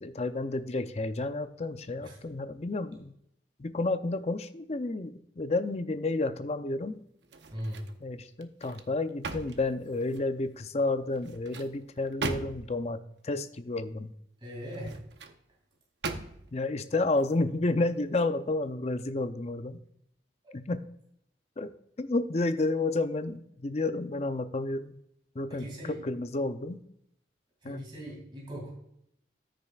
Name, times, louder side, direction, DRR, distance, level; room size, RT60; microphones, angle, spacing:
voice 1, 0.0-3.1 3.6-7.0 8.0-14.1 16.5-19.8 20.5-20.8 21.6-21.7 22.0-25.0 25.4-26.8 27.6-27.8, left 2 dB, 35° left, 10 dB, 0.5 m, -31 dB
sound 1, 7.2-8.0 8.4-10.4 11.1-12.8 14.6-15.4 16.0-16.6 17.1-17.3, right 3 dB, 80° right, 0.8 m, -39 dB
voice 2, 7.5-7.8 14.4-15.0 25.5-26.0 27.6-28.7, equal, 25° right, -2 dB, 2.7 m, -39 dB
14.0 x 6.5 x 2.4 m, 0.74 s
head